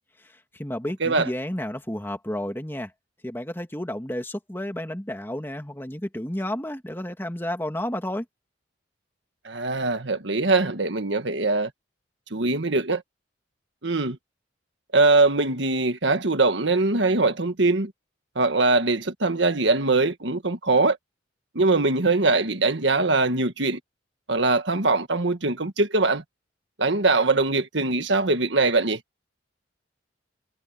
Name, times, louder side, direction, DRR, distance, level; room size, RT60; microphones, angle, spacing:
voice 1, 0.2-2.9 3.2-8.3, left 1 dB, 10° left, 2.3 m, -31 dB
voice 2, 9.4-11.7 12.3-13.0 13.8-14.2 14.9-17.9 18.3-21.0 21.5-23.8 24.3-26.2 26.8-29.0, right 3 dB, 70° right, 1.7 m, -22 dB
head